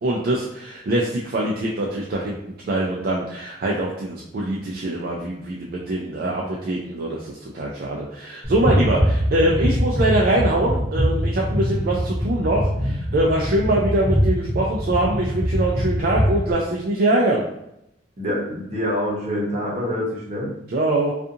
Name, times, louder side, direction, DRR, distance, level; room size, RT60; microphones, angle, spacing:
voice 1, 0.0-2.4 2.7-17.4 20.7-21.1, right 1 dB, 55° right, -3 dB, 0.4 m, -23 dB
voice 2, 6.2-6.6 18.2-20.5, equal, 35° right, -5 dB, 0.9 m, -26 dB
sound 1, 8.4-16.5, equal, ahead, 0.6 m, -23 dB
2.7 x 2.4 x 2.4 m, 0.82 s
head